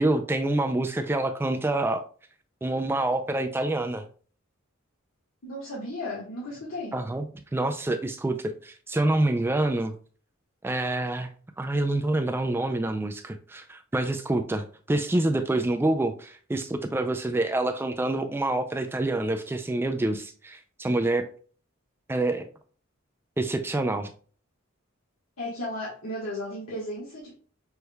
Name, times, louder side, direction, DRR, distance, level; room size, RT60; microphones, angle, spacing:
voice 1, 0.0-2.0 2.6-4.0 6.9-7.2 7.5-9.9 10.6-11.3 11.6-21.3 22.1-22.5 23.4-24.1, right 2 dB, 10° right, 0.3 m, -27 dB
voice 2, 5.4-7.0 25.4-27.4, left 1 dB, 80° left, 1.4 m, -35 dB
6.1 x 3.3 x 2.2 m
head